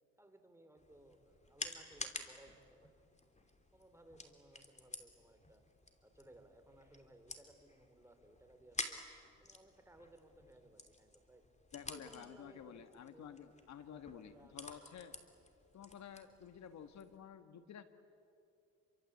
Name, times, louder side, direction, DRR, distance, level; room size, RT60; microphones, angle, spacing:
voice 1, 0.2-2.9 3.2-3.5 3.7-5.6 6.0-9.0 9.4-11.4 11.9-12.8 13.1-13.4 13.8-14.9 15.8-15.9, right 1 dB, 10° right, 6 dB, 3.7 m, -62 dB
sound 1, 0.8-17.2, left 2 dB, 25° left, 3.0 m, -51 dB
voice 2, 11.7-15.2 15.7-17.8, left 8 dB, 65° left, 9 dB, 1.4 m, -52 dB
29.5 x 24.0 x 8.3 m, 2.6 s
cardioid pair, 90°, 30 cm